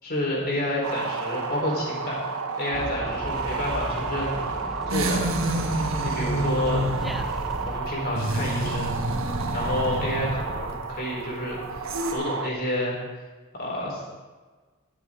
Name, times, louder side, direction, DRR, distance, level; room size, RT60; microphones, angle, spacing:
voice 1, 0.0-2.2 2.6-4.4 4.9-5.4 6.0-6.9 7.7-8.9 9.5-12.9 13.5-14.0, left 1 dB, 45° left, -4 dB, 3.9 m, -29 dB
sound 1, 0.8-12.5, right 5 dB, 90° right, 0.8 m, -32 dB
sound 2, 2.7-7.8, equal, ahead, 0.5 m, -36 dB
sound 3, 4.9-12.1, right 1 dB, 65° right, 1.3 m, -29 dB
19.0 x 7.3 x 3.7 m, 1.3 s
head